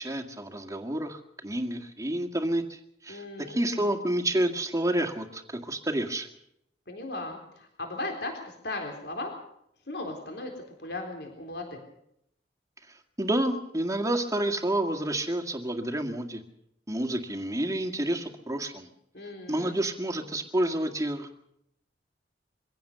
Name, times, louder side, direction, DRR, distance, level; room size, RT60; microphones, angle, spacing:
voice 1, 0.0-6.3 12.9-16.4 16.9-18.9 19.5-21.4, right 1 dB, 20° right, 5 dB, 1.8 m, -29 dB
voice 2, 3.1-3.9 6.9-9.3 9.9-10.5 10.8-11.8 19.1-19.8, left 2 dB, 65° left, 3 dB, 3.9 m, -37 dB
23.5 x 16.5 x 6.8 m, 0.76 s
head